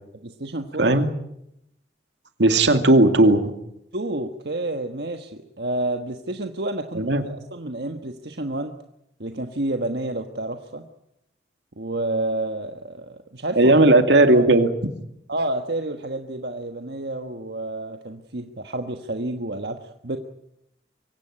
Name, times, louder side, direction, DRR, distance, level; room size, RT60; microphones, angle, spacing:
voice 1, 0.1-1.0 3.9-8.7 9.2-10.9 11.8-13.8 14.3-14.5 15.3-20.2, right 2 dB, 70° right, 5 dB, 1.4 m, -29 dB
voice 2, 2.4-3.5 7.0-7.2 13.6-14.7, right 2 dB, 85° right, 7 dB, 2.3 m, -16 dB
24.0 x 16.5 x 9.8 m, 0.81 s
head